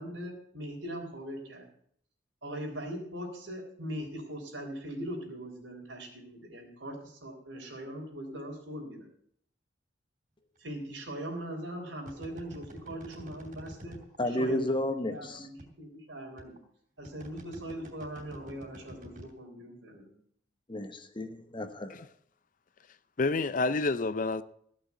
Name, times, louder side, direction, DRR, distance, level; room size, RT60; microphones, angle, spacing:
voice 1, 0.0-1.7 2.4-9.1 10.6-14.0 14.2-16.6 17.0-20.1, right 1 dB, 80° right, 3.7 m, -40 dB
sound 1, 10.6-10.7 12.1-14.2 15.1-15.2 15.6-15.7 16.4-16.6 17.0-19.3, equal, 45° right, 2.9 m, -47 dB
voice 2, 14.2-15.5 20.7-22.0, left 1 dB, 25° left, 1.1 m, -32 dB
voice 3, 23.2-24.4, left 3 dB, 45° left, 0.5 m, -28 dB
15.0 x 6.3 x 8.3 m
head